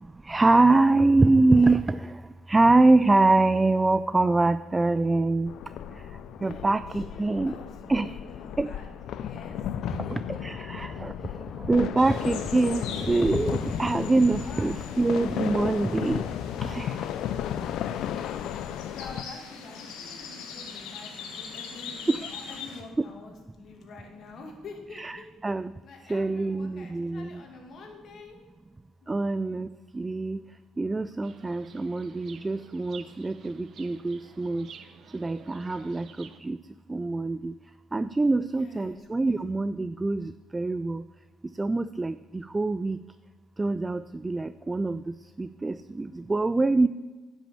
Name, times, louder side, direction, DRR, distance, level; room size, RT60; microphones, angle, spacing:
voice 1, 0.3-2.0 2.5-5.5 6.4-7.6 7.9-8.1 8.6-8.7 10.1-11.1 11.7-16.2 16.6-16.9 22.1-22.3 24.9-25.7 26.1-27.4 29.1-29.7 29.9-30.4 30.8-34.7 35.1-36.6 36.9-37.5 37.9-41.0 41.6-43.0 43.6-45.0 45.4-46.9, right 2 dB, 20° right, 14 dB, 0.3 m, -24 dB
sound 1, 5.5-19.2, left 10 dB, 70° left, 0.4 m, -34 dB
voice 2, 6.4-6.8 7.1-10.4 10.9-11.6 13.7-14.8 18.1-22.0 22.5-25.2 25.8-28.4 29.0-29.2 38.4-39.0 39.3-39.4, left 3 dB, 55° left, 2 dB, 2.3 m, -47 dB
sound 2, 12.0-22.8, left 6 dB, 90° left, 1.4 m, -42 dB
Chirp tweet, 31.2-36.4, right 7 dB, 55° right, 0.8 m, -50 dB
10.0 x 6.2 x 7.0 m, 1.3 s
cardioid pair, 90°, 0 cm